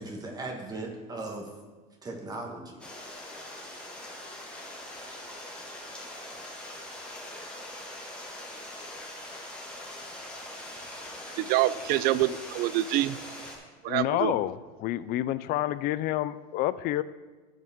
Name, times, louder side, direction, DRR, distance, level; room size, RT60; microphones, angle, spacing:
voice 1, 0.0-1.5 2.0-2.8, right 2 dB, 20° right, 1 dB, 1.7 m, -37 dB
Stream, 2.8-13.6, left 1 dB, 5° left, 1.9 m, -42 dB
voice 2, 11.4-13.2 13.8-14.4, right 14 dB, 50° right, 17 dB, 0.4 m, -26 dB
voice 3, 13.9-17.0, left 14 dB, 45° left, 16 dB, 0.4 m, -29 dB
15.5 x 5.1 x 3.7 m, 1.3 s
supercardioid pair, 125°, 20 cm